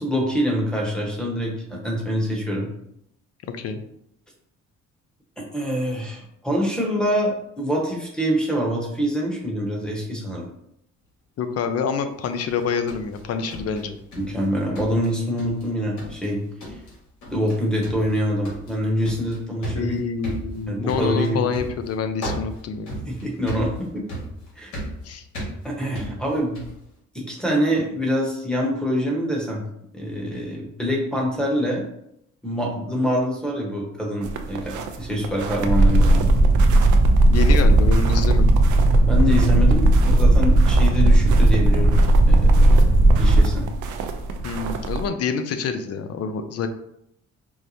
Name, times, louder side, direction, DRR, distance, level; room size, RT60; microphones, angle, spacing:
voice 1, 0.0-2.7 5.5-10.5 14.2-16.8 17.3-20.0 20.7-21.4 23.1-24.1 24.6-24.7 25.6-26.6 27.1-29.6 29.9-31.8 32.4-36.3 39.0-41.9 42.3-42.8 43.1-43.6, equal, 5° left, -1 dB, 1.0 m, -25 dB
voice 2, 3.5-3.8 11.4-14.0 19.8-23.2 25.0-25.2 37.3-38.5 44.4-46.7, left 6 dB, 55° left, 8 dB, 0.5 m, -27 dB
sound 1, 12.5-14.5 14.8-15.7 16.0-16.3 16.6-17.0 17.2-17.6 17.8-26.8, equal, 70° left, 1.4 m, -35 dB
sound 2, 34.2-45.1, right 4 dB, 75° right, 0.5 m, -32 dB
sound 3, 35.7-43.4, right 1 dB, 25° right, 0.5 m, -15 dB
4.6 x 2.1 x 2.7 m, 0.76 s
cardioid pair, 90°, 30 cm